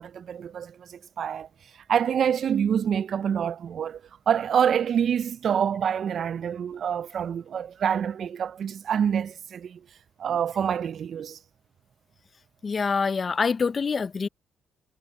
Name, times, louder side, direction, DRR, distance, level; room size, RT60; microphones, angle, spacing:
voice 1, 0.0-1.5 1.9-4.0 4.3-9.8 10.2-11.4, right 8 dB, 60° right, 0.3 m, -26 dB
voice 2, 12.6-14.3, left 5 dB, 40° left, 0.6 m, -25 dB
cardioid pair, 90°, 0 cm